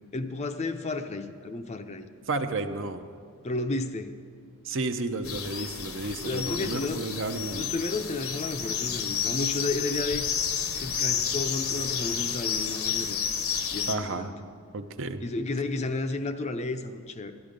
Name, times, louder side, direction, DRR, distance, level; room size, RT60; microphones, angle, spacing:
voice 1, 0.1-2.1 3.4-4.2 6.0-7.2 7.5-10.2 10.8-13.2 13.7-14.4 15.2-17.3, left 2 dB, 30° left, 8 dB, 0.5 m, -32 dB
voice 2, 2.3-3.0 4.6-7.7 13.9-14.3 14.7-15.2, right 3 dB, 60° right, 8 dB, 0.7 m, -32 dB
sound 1, 5.2-13.9, left 7 dB, 70° left, 0.9 m, -30 dB
12.5 x 12.5 x 5.2 m, 2.1 s
head